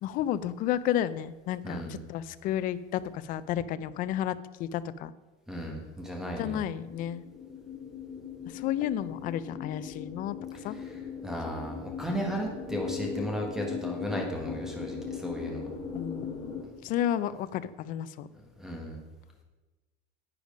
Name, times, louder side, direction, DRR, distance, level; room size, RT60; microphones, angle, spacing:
voice 1, 0.0-5.1 6.4-7.2 8.5-10.4 10.6-10.8 15.9-18.3, left 11 dB, 40° left, 15 dB, 0.5 m, -32 dB
voice 2, 1.6-2.0 5.5-6.6 10.7-15.7 18.6-19.0, equal, ahead, 1 dB, 1.5 m, -35 dB
sound 1, 6.9-16.6, left 6 dB, 25° left, 3.8 m, -39 dB
10.5 x 8.9 x 5.2 m, 1.2 s
cardioid pair, 165°, 21 cm